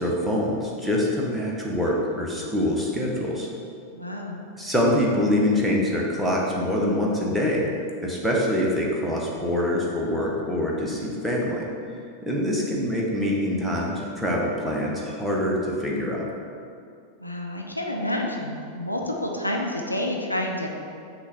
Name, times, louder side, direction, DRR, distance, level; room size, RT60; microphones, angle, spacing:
voice 1, 0.0-3.5 4.6-7.6 8.0-11.7 12.2-16.3, left 1 dB, ahead, -4 dB, 1.1 m, -25 dB
voice 2, 3.9-4.5 12.3-12.7 17.2-20.7, left 1 dB, 85° left, 0 dB, 0.6 m, -29 dB
6.1 x 3.2 x 5.5 m, 2.4 s
figure-of-eight pair, 90°, 0 cm